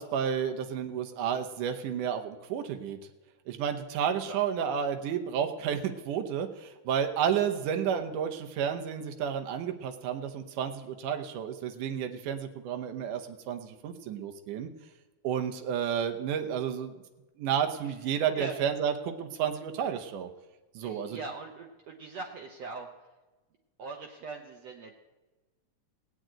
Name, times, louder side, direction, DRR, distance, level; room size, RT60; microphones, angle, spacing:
voice 1, 0.0-3.0 3.5-14.7 15.2-16.9 17.4-20.3 20.8-21.2, right 8 dB, 85° right, 5 dB, 2.5 m, -31 dB
voice 2, 4.3-4.7 18.1-18.5 20.8-22.9 23.8-25.0, right 4 dB, 65° right, 2 dB, 1.8 m, -41 dB
18.5 x 6.4 x 8.9 m, 1.2 s
omnidirectional pair, 3.6 m